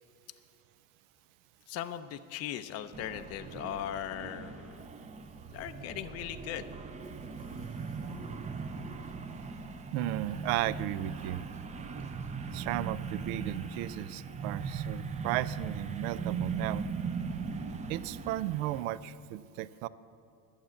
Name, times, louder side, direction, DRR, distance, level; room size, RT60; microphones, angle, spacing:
voice 1, 1.7-4.8 5.5-6.7, left 11 dB, 35° left, 10 dB, 0.5 m, -39 dB
sound 1, 2.9-18.8, right 5 dB, 15° right, 0.5 m, -39 dB
voice 2, 9.9-11.4 12.5-16.8 17.9-19.9, right 15 dB, 60° right, 17 dB, 0.5 m, -35 dB
11.5 x 7.2 x 7.6 m, 2.7 s
supercardioid pair, 105°, 47 cm